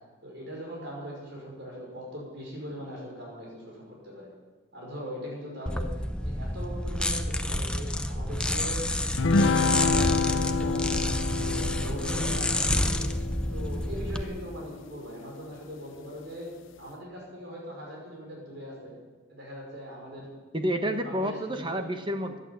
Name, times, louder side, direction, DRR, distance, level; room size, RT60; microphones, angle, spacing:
voice 1, 0.2-4.3 4.7-5.9 6.2-8.8 9.2-10.9 11.2-13.1 13.5-16.5 16.8-19.0 19.3-20.3 21.0-21.9, equal, 55° right, -2 dB, 5.4 m, -41 dB
sound 1, 5.7-14.2, left 1 dB, 5° left, 0.6 m, -29 dB
sound 2, 9.2-14.8, left 4 dB, 70° left, 0.7 m, -28 dB
voice 2, 20.5-22.4, equal, 25° right, 7 dB, 1.2 m, -29 dB
15.0 x 11.0 x 8.5 m, 1.4 s
head